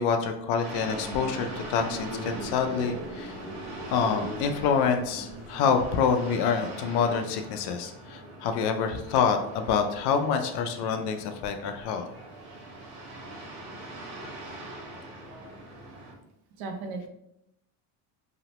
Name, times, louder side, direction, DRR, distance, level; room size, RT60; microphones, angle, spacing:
voice 1, 0.0-3.4 3.9-12.1, left 6 dB, 60° left, 6 dB, 0.5 m, -27 dB
sound 1, 0.6-16.1, right 1 dB, 85° right, 1.0 m, -42 dB
sound 2, 0.7-5.8, equal, 10° left, 0.4 m, -40 dB
voice 2, 16.6-17.1, right 3 dB, 55° right, 5 dB, 0.6 m, -36 dB
2.9 x 2.0 x 2.9 m, 0.82 s
supercardioid pair, 110°, 46 cm